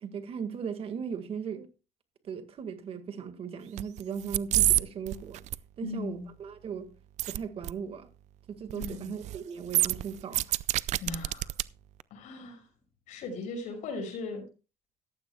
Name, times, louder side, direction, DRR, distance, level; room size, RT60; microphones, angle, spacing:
voice 1, 0.0-1.7 2.2-5.4 5.8-6.9 7.3-8.1 8.5-10.6, right 6 dB, 50° right, 1.8 m, -38 dB
sound 1, 3.8-4.0 4.3-4.8 5.1-5.6 7.2-7.4 7.6-7.7 8.7-9.0 9.2-9.4 9.7-11.6 12.0-12.1, right 15 dB, 70° right, 0.5 m, -26 dB
voice 2, 5.8-6.3 8.7-9.1 11.0-11.5 12.1-12.7 13.1-14.5, left 3 dB, 80° left, 6.0 m, -38 dB
14.5 x 13.5 x 2.3 m
cardioid pair, 115°, 13 cm